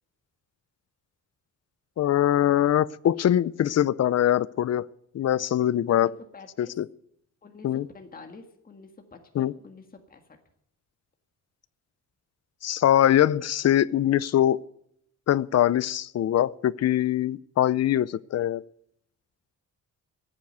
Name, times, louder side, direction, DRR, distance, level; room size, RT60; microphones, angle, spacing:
voice 1, 2.0-4.9 5.1-6.1 6.6-6.9 7.6-7.9 9.4-9.5 12.6-14.6 15.3-18.6, left 11 dB, 55° left, 0.6 m, -23 dB
voice 2, 5.9-6.7 7.4-10.4, left 4 dB, 25° left, 1.8 m, -48 dB
16.5 x 8.7 x 9.2 m
wide cardioid pair, 140°, 32 cm